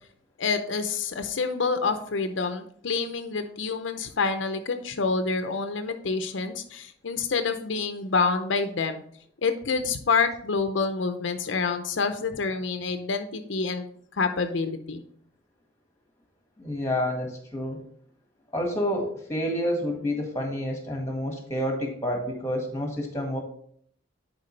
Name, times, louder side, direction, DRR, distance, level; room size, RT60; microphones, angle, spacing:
voice 1, 0.4-9.0 9.4-13.9 14.2-15.0, left 4 dB, 80° left, 7 dB, 0.6 m, -27 dB
voice 2, 16.6-17.8 18.5-23.4, equal, 15° left, 1 dB, 1.7 m, -29 dB
10.5 x 4.6 x 3.2 m, 0.62 s
head